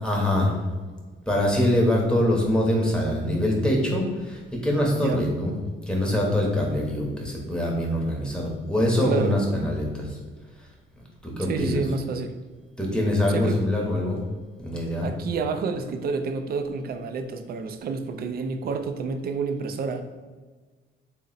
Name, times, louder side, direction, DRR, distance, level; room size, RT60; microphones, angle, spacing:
voice 1, 0.0-0.6 1.3-5.5 5.9-10.2 10.9-11.8 12.8-14.2 14.6-15.1, left 1 dB, 5° left, -2 dB, 0.9 m, -24 dB
voice 2, 9.0-9.4 11.5-12.4 13.3-13.6 15.0-20.0, right 4 dB, 50° right, 8 dB, 0.4 m, -29 dB
3.7 x 2.1 x 3.9 m, 1.4 s
cardioid pair, 90°, 20 cm